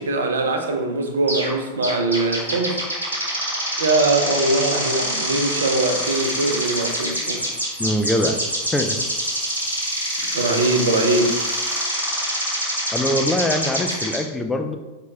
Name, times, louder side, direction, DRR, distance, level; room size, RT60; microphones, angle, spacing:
voice 1, 0.0-2.8 3.8-7.5 10.3-11.4, right 2 dB, 70° right, 4 dB, 0.5 m, -22 dB
sound 1, 1.3-1.5 1.8-14.2, equal, 85° left, 1.2 m, -25 dB
voice 2, 7.8-8.4 8.7-9.0 12.9-14.8, left 1 dB, 10° left, 6 dB, 0.4 m, -22 dB
4.4 x 3.4 x 2.8 m, 1.2 s
figure-of-eight pair, 90°, 0 cm